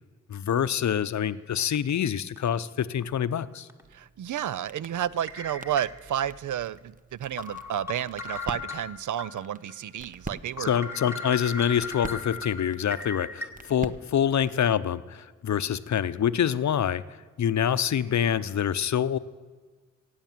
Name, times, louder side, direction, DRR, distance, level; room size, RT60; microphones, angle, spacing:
voice 1, 0.3-3.7 10.6-19.2, left 9 dB, 65° left, 15 dB, 0.6 m, -26 dB
sound 1, 1.8-1.9 2.4-2.5 3.7-3.8 5.3-6.3 6.8-6.9 7.4-9.3 9.7-9.8 10.2-10.3 10.6-13.5, left 4 dB, 10° right, 1.9 m, -37 dB
sound 2, 3.8-14.7, right 3 dB, 25° right, 0.8 m, -45 dB
voice 2, 3.9-10.7, right 10 dB, 75° right, 20 dB, 0.5 m, -31 dB
16.0 x 8.8 x 7.4 m, 1.4 s
cardioid pair, 60°, 30 cm